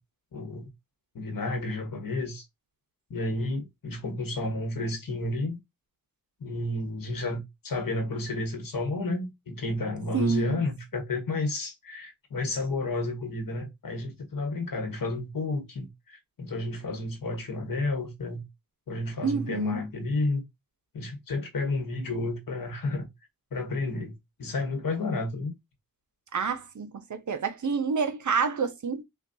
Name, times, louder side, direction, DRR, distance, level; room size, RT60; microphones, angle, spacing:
voice 1, 0.3-0.7 1.1-2.4 3.1-5.6 6.4-18.4 18.9-20.4 20.9-23.1 23.5-25.5, left 2 dB, 75° left, 1.2 m, -31 dB
voice 2, 10.1-10.6 19.2-19.8 26.3-29.0, right 5 dB, 60° right, 0.7 m, -28 dB
5.8 x 2.3 x 2.6 m
wide cardioid pair, 90°, 34 cm